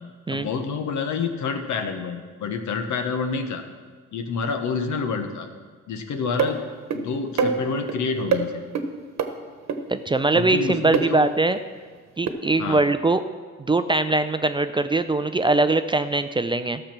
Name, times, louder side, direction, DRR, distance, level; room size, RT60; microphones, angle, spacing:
voice 1, 0.3-3.6 4.1-5.5 5.9-6.6 6.9-8.6 10.3-11.3 12.6-12.8, left 5 dB, 70° left, 6 dB, 1.3 m, -28 dB
sound 1, 6.4-6.5 6.9-7.0 7.4-8.0 8.3-8.4 8.8-8.9 9.2-9.3 9.7-9.8 10.9-11.1 12.3-12.4, right 6 dB, 60° right, 1.2 m, -23 dB
voice 2, 9.9-11.6 12.2-13.2 13.7-16.8, right 2 dB, 15° right, 10 dB, 0.5 m, -21 dB
13.5 x 6.7 x 6.0 m, 1.5 s
cardioid pair, 90°, 30 cm